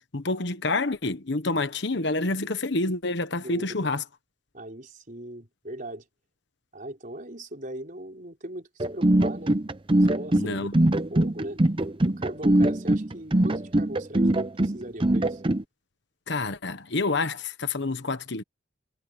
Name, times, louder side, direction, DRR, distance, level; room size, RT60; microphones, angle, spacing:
voice 1, 0.1-4.0 10.4-10.8 16.3-18.4, left 3 dB, 60° left, 1.2 m, -28 dB
voice 2, 3.3-3.9 4.5-6.0 6.7-9.6 10.0-11.6 12.0-15.4, right 1 dB, 40° right, 4.8 m, -39 dB
sound 1, 8.8-15.6, right 1 dB, 25° right, 0.7 m, -22 dB
head